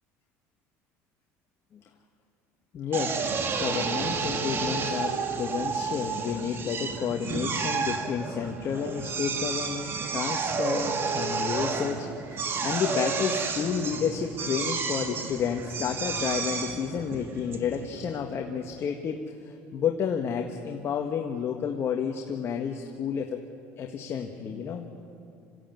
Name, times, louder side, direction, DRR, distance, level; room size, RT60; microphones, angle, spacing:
voice 1, 2.7-3.2 3.6-23.4 23.8-24.9, left 7 dB, 45° left, 3 dB, 1.7 m, -31 dB
Drill, 2.9-18.2, right 5 dB, 40° right, 2.3 m, -31 dB
27.0 x 16.0 x 9.3 m, 2.6 s
cardioid pair, 120°, 6 cm